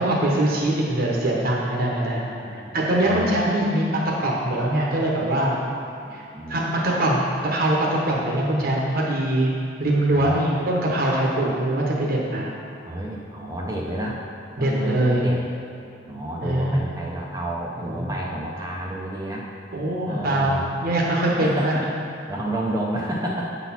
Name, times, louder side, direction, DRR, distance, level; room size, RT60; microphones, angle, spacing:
voice 1, 0.0-2.2 2.7-5.6 6.1-6.2 6.5-9.5 9.8-12.5 14.6-15.3 16.4-16.8 17.8-18.1 19.7-21.8, right 1 dB, 50° right, -3 dB, 1.0 m, -22 dB
voice 2, 2.4-2.7 3.0-3.4 6.0-6.6 10.1-10.4 12.9-14.2 14.6-15.5 16.1-19.5 20.1-20.7 21.4-21.9 22.3-23.6, right 1 dB, 20° right, -3 dB, 0.6 m, -30 dB
8.2 x 4.1 x 5.8 m, 2.6 s
head